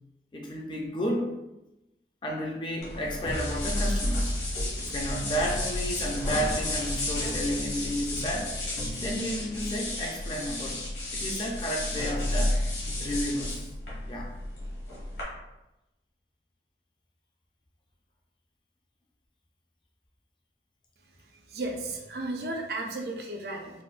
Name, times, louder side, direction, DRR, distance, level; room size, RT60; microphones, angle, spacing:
voice 1, 0.3-1.4 2.2-4.3 4.8-8.6 9.0-10.8 11.1-12.6 13.0-13.7 14.1-14.3, equal, 25° left, 0 dB, 0.4 m, -32 dB
sound 1, 2.8-15.2, left 1 dB, 65° left, 1.1 m, -31 dB
voice 2, 21.5-23.8, right 2 dB, 60° right, 1 dB, 0.4 m, -34 dB
4.0 x 2.1 x 2.4 m, 0.96 s
head